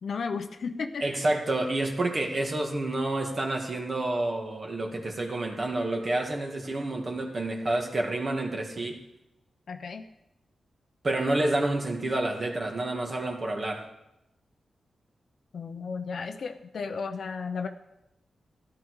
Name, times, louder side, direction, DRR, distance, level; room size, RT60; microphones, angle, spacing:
voice 1, 0.0-1.3 9.7-10.1 15.5-17.7, left 5 dB, 65° left, 6 dB, 0.8 m, -34 dB
voice 2, 1.0-9.0 11.0-13.8, right 2 dB, 40° right, 1 dB, 2.1 m, -29 dB
14.0 x 11.5 x 4.8 m, 0.88 s
wide cardioid pair, 110°, 0 cm